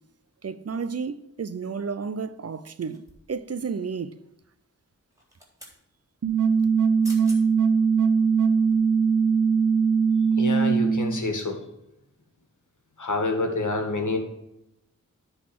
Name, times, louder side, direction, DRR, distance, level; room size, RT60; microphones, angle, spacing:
voice 1, 0.4-4.1, right 5 dB, 50° right, 0.6 m, -32 dB
sound 1, 2.8-3.4 5.1-5.8 6.8-6.9 7.0-7.4 8.0-8.1, equal, 10° right, 3.6 m, -46 dB
sound 2, 6.2-11.2, right 5 dB, 70° right, 1.0 m, -21 dB
voice 2, 10.4-11.6 13.0-14.2, left 2 dB, 65° left, 1.9 m, -27 dB
10.0 x 4.0 x 7.6 m
cardioid pair, 50°, 32 cm